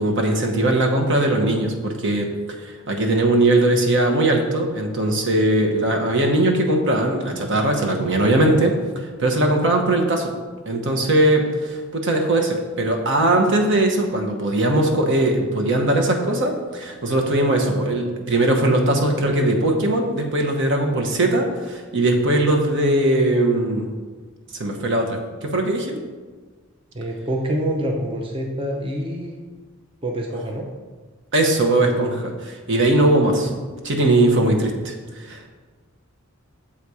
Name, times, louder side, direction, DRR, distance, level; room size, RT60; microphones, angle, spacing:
voice 1, 0.0-2.3 2.6-10.3 10.7-23.9 24.5-26.0 31.3-33.5 33.8-35.5, right 1 dB, 60° right, 2 dB, 1.0 m, -20 dB
voice 2, 26.9-29.4 30.0-30.7, right 1 dB, 25° right, 1 dB, 0.7 m, -26 dB
7.3 x 4.2 x 4.8 m, 1.4 s
head